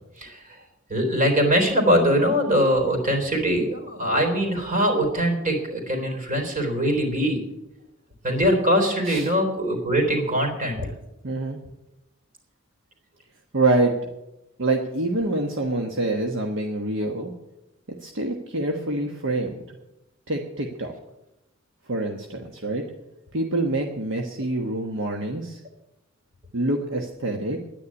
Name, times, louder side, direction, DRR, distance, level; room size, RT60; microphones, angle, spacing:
voice 1, 0.2-0.6 0.9-7.4 8.2-10.9, equal, 40° right, 3 dB, 3.9 m, -22 dB
voice 2, 11.2-11.6 13.5-13.9 14.6-17.3 18.0-19.6 20.3-20.9 21.9-22.8 23.3-25.6 26.5-27.6, right 2 dB, 65° right, 3 dB, 1.2 m, -26 dB
10.0 x 9.8 x 9.7 m, 0.93 s
head